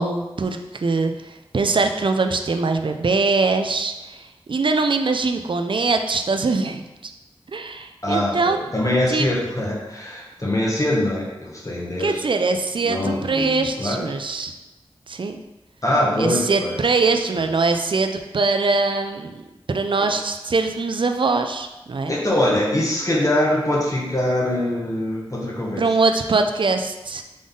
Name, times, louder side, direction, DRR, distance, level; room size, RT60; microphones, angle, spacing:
voice 1, 0.0-7.1 7.5-8.6 9.1-9.3 12.0-14.5 15.1-15.4 16.2-22.1 25.8-27.2, right 3 dB, 55° right, 6 dB, 0.4 m, -22 dB
voice 2, 8.0-12.2 12.8-14.0 15.8-17.1 17.4-17.5 19.9-20.2 22.1-25.9, left 1 dB, 35° left, -4 dB, 1.2 m, -23 dB
3.8 x 3.8 x 3.6 m, 1.0 s
wide cardioid pair, 80°, 10 cm